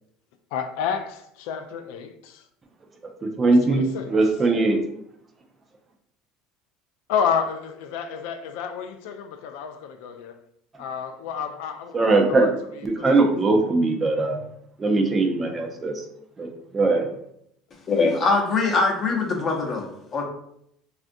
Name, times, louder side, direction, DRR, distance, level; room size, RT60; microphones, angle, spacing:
voice 1, 0.5-2.4 3.4-4.1 7.1-10.4 10.8-12.5 13.0-13.1, left 7 dB, 80° left, 0.3 m, -30 dB
voice 2, 3.0-4.8 10.7-10.8 11.9-12.5 12.8-14.5 14.8-16.1 16.4-17.1, right 3 dB, 25° right, 0.5 m, -21 dB
voice 3, 17.9-20.2, left 3 dB, 30° left, 0.7 m, -22 dB
3.4 x 2.5 x 2.6 m
cardioid pair, 130°, 0 cm